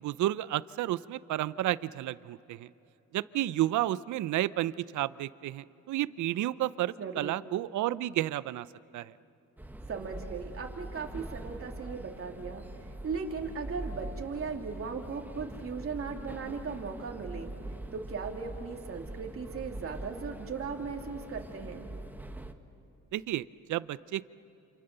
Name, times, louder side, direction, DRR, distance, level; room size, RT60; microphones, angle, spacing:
voice 1, 0.0-2.7 3.1-8.7 8.9-9.1 23.1-24.3, right 14 dB, 75° right, 18 dB, 0.6 m, -31 dB
voice 2, 7.0-7.3 9.9-12.6 13.0-17.5 17.9-21.9, right 5 dB, 45° right, 1 dB, 2.8 m, -37 dB
sound 1, 9.6-22.5, right 1 dB, 5° right, 1.4 m, -43 dB
28.0 x 27.5 x 6.8 m, 2.9 s
cardioid pair, 90°, 30 cm